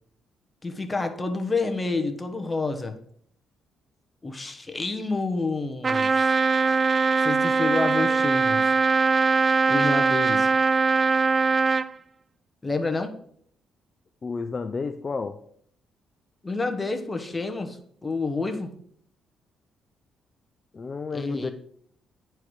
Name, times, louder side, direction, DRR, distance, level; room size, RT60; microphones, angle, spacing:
voice 1, 0.6-2.9 4.2-6.3 7.2-8.7 9.7-10.5 12.6-13.1 16.4-18.7 21.1-21.5, left 3 dB, 20° left, 6 dB, 1.1 m, -29 dB
Trumpet, 5.8-11.9, right 4 dB, 35° right, 0.3 m, -21 dB
voice 2, 14.2-15.4 20.7-21.5, left 4 dB, 35° left, 8 dB, 0.5 m, -31 dB
9.7 x 4.6 x 4.7 m, 0.63 s
cardioid pair, 90°, 0 cm